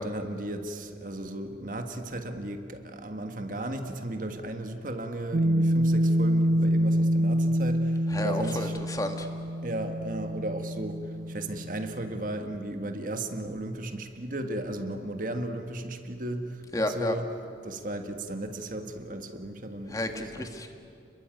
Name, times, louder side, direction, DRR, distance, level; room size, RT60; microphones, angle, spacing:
voice 1, 0.0-8.7 9.6-17.3 17.6-20.5, right 1 dB, 50° right, 6 dB, 1.7 m, -35 dB
sound 1, 5.3-12.0, equal, 70° right, 0.7 m, -26 dB
voice 2, 8.1-9.3 16.7-17.2 19.9-20.7, left 1 dB, 20° left, 5 dB, 1.7 m, -31 dB
29.5 x 22.0 x 9.2 m, 2.5 s
head